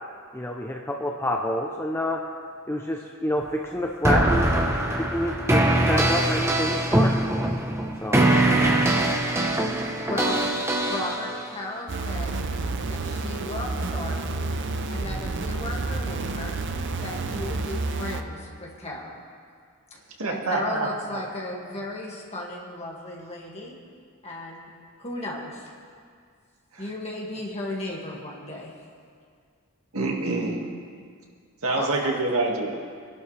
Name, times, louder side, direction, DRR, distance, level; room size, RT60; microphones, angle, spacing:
voice 1, 0.3-2.2 2.7-4.5 5.0-7.6 8.0-8.3, left 1 dB, 10° left, 1 dB, 0.7 m, -28 dB
sound 1, 4.1-11.4, right 1 dB, 10° right, 0.9 m, -22 dB
voice 2, 10.1-10.4 10.9-12.4 12.9-14.5 14.9-16.6 17.0-19.2 19.9-20.0 20.3-23.8 24.2-24.7 25.0-25.7 26.8-28.7 31.7-32.2, left 1 dB, 30° left, -3 dB, 2.1 m, -35 dB
sound 2, 11.9-18.2, right 3 dB, 55° right, 0.7 m, -30 dB
voice 3, 20.2-20.9 26.7-26.8 29.9-30.7 31.6-32.8, right 2 dB, 75° right, -1 dB, 2.0 m, -26 dB
23.5 x 11.5 x 3.3 m, 2.1 s
head